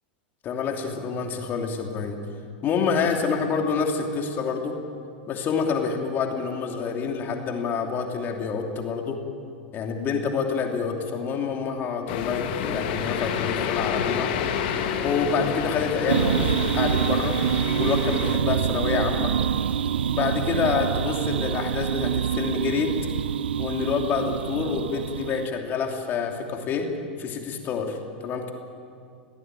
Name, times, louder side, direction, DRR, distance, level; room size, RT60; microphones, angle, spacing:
voice 1, 0.4-2.2 2.6-4.8 5.3-9.2 9.7-14.3 15.0-17.4 17.8-19.3 20.1-22.9 23.6-26.9 27.2-28.5, left 5 dB, 35° left, 3 dB, 2.9 m, -27 dB
sound 1, 12.1-18.4, left 7 dB, 60° left, 2.2 m, -29 dB
sound 2, 16.1-25.5, right 9 dB, 80° right, 0.5 m, -26 dB
22.0 x 17.5 x 9.1 m, 2.4 s
hypercardioid pair, 100°, 6 cm